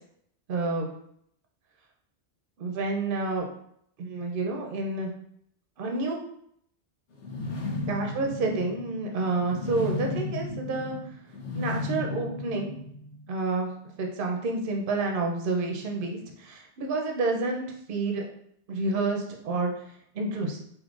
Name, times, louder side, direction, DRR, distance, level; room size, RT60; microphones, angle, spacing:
voice 1, 0.5-0.9 2.6-3.5 4.0-5.1 5.8-6.2 7.9-11.0 11.5-12.7 13.3-13.7 14.0-18.2 18.7-19.7 20.1-20.6, right 3 dB, 60° right, 2 dB, 0.8 m, -29 dB
sound 1, 7.2-13.3, left 2 dB, 85° left, 1.0 m, -34 dB
3.6 x 2.7 x 2.4 m, 0.69 s
omnidirectional pair, 1.1 m